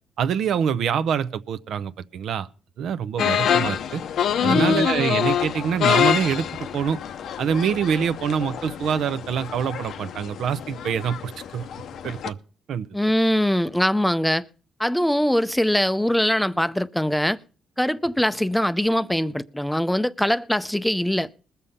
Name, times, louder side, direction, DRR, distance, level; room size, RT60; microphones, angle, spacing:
voice 1, 0.2-2.5 2.8-4.0 4.4-7.0 7.4-11.7 12.0-12.4 12.7-12.9, right 7 dB, 70° right, 0.7 m, -25 dB
sound 1, 3.2-12.3, left 9 dB, 70° left, 0.7 m, -26 dB
voice 2, 4.4-4.9 12.9-14.5 14.8-17.4 17.8-21.3, equal, 5° left, 0.6 m, -22 dB
20.5 x 6.9 x 5.6 m
cardioid pair, 90°, 0 cm